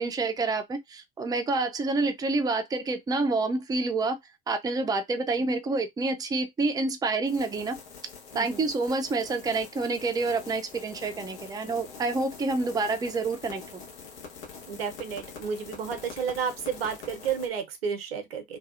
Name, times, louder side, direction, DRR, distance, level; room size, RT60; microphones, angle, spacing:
voice 1, 0.0-4.2 4.5-7.8 8.3-13.8, right 3 dB, 15° right, 0.5 m, -28 dB
sound 1, 7.3-17.5, left 5 dB, 70° left, 1.1 m, -45 dB
voice 2, 8.3-8.7 14.7-18.6, right 7 dB, 85° right, 0.7 m, -32 dB
2.7 x 2.3 x 2.4 m
hypercardioid pair, 70°, 30 cm